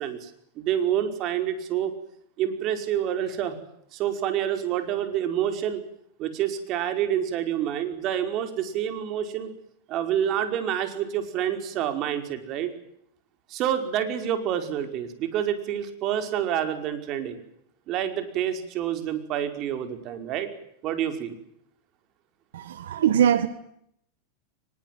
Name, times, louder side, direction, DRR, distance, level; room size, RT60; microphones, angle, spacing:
voice 1, 0.0-1.9 2.4-3.6 3.9-5.8 6.2-9.5 9.9-12.8 13.5-17.4 17.9-20.5 20.8-21.4, right 10 dB, 45° right, 8 dB, 5.2 m, -28 dB
voice 2, 22.5-23.5, right 9 dB, 85° right, 13 dB, 1.6 m, -22 dB
23.5 x 21.5 x 9.4 m, 0.71 s
supercardioid pair, 130°, 0 cm